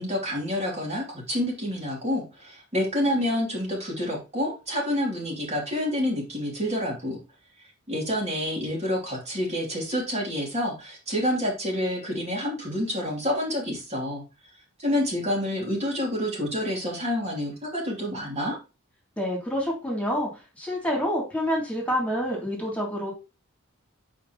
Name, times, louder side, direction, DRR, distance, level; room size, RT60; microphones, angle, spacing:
voice 1, 0.0-7.2 7.9-14.2 14.8-18.6, left 1 dB, 35° right, -2 dB, 2.8 m, -28 dB
voice 2, 19.2-20.3 20.6-23.1, equal, 5° left, -2 dB, 2.8 m, -27 dB
8.8 x 5.2 x 3.0 m, 0.28 s
head